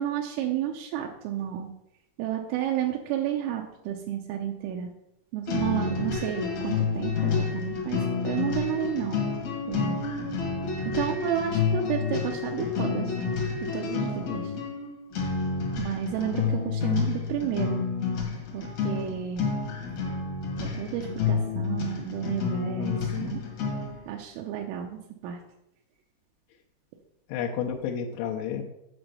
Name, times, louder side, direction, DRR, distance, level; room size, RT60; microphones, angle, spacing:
voice 1, 0.0-1.7 2.2-4.9 5.3-9.2 9.7-10.0 10.9-13.1 13.6-14.5 15.8-17.9 18.5-19.5 20.6-23.4 24.1-25.4, right 10 dB, 85° right, 1 dB, 3.1 m, -31 dB
sound 1, 5.5-24.0, left 5 dB, 60° left, 2.0 m, -29 dB
voice 2, 14.3-14.7 22.7-23.4 27.3-28.6, left 8 dB, 75° left, -1 dB, 3.1 m, -32 dB
8.9 x 4.4 x 6.8 m, 0.84 s
omnidirectional pair, 5.9 m